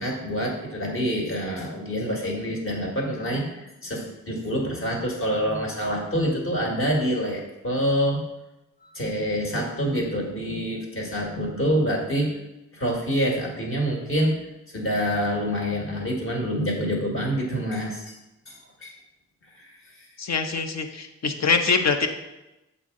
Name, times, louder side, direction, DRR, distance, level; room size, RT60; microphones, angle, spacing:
voice 1, 0.0-8.2 8.8-12.4 12.7-14.3 14.7-18.2 18.5-19.0 19.6-20.1, equal, 45° left, -1 dB, 1.7 m, -26 dB
voice 2, 20.2-22.1, left 5 dB, 60° left, 6 dB, 0.7 m, -24 dB
7.0 x 4.3 x 3.7 m, 0.98 s
cardioid pair, 70°, 31 cm